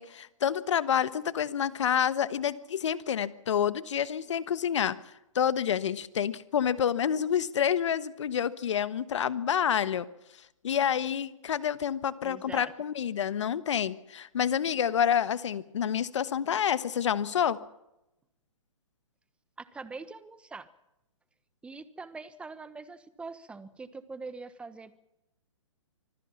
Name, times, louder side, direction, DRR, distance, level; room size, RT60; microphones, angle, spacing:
voice 1, 0.0-5.0 5.3-10.1 10.6-17.6, left 8 dB, 65° left, 16 dB, 1.3 m, -28 dB
voice 2, 12.2-12.7 19.6-20.7 21.6-25.0, right 4 dB, 5° right, 15 dB, 1.1 m, -43 dB
25.0 x 15.5 x 7.2 m, 0.89 s
hypercardioid pair, 135°, 17 cm